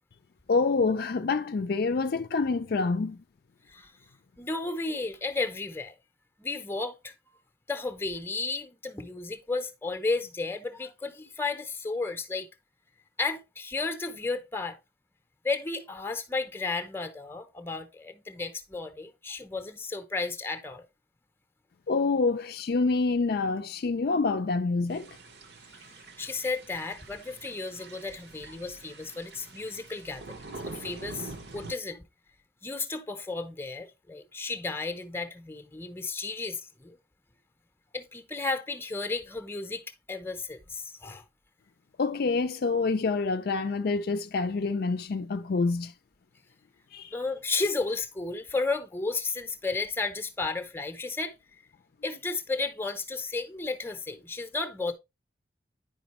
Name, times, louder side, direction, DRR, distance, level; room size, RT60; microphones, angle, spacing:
voice 1, 0.5-3.2 21.9-25.1 42.0-45.9 46.9-47.1, left 4 dB, 60° left, 0.4 m, -27 dB
voice 2, 4.4-5.9 6.4-7.1 7.7-12.5 13.2-14.8 15.4-20.9 26.2-30.4 30.6-32.1 32.6-37.0 37.9-41.2 47.1-51.3 52.0-54.9, left 3 dB, 15° left, 0.7 m, -33 dB
sound 1, 24.9-31.7, right 3 dB, 65° right, 1.0 m, -45 dB
9.3 x 5.1 x 3.0 m
head